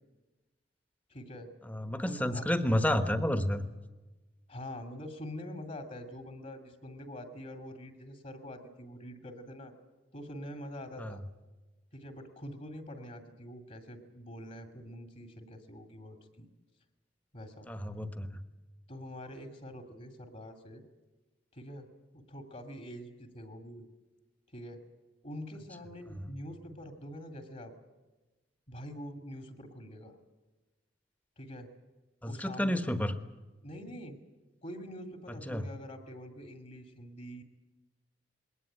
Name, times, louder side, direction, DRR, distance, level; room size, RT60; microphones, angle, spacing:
voice 1, 1.1-1.5 2.0-2.5 4.5-9.7 10.1-11.2 11.9-16.5 17.3-17.7 18.9-20.8 21.5-21.9 22.1-23.8 24.5-24.8 25.2-27.7 28.7-30.2 31.4-31.7 32.3-32.8 33.6-34.2 34.6-37.4, equal, 45° left, 6 dB, 2.4 m, -45 dB
voice 2, 1.7-3.6 11.0-11.2 17.7-18.4 32.2-33.1 35.5-35.7, left 1 dB, 10° left, 10 dB, 1.2 m, -30 dB
21.5 x 18.0 x 10.0 m, 1.2 s
head